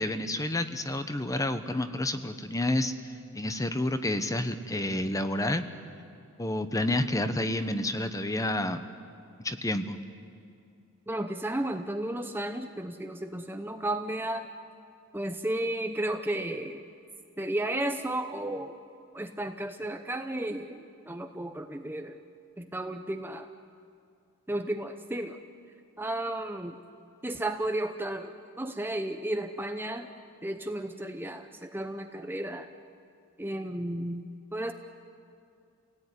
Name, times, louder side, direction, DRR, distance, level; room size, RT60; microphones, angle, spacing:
voice 1, 0.0-5.7 6.4-8.8 9.4-10.0, left 1 dB, 15° left, 9 dB, 1.0 m, -29 dB
voice 2, 11.1-14.5 15.1-16.8 17.4-18.7 19.1-22.2 22.6-23.5 24.5-25.4 26.0-26.8 27.2-28.3 28.6-30.1 30.4-32.7 33.4-34.7, right 1 dB, 10° right, 6 dB, 0.7 m, -33 dB
28.0 x 18.0 x 9.8 m, 2.4 s
head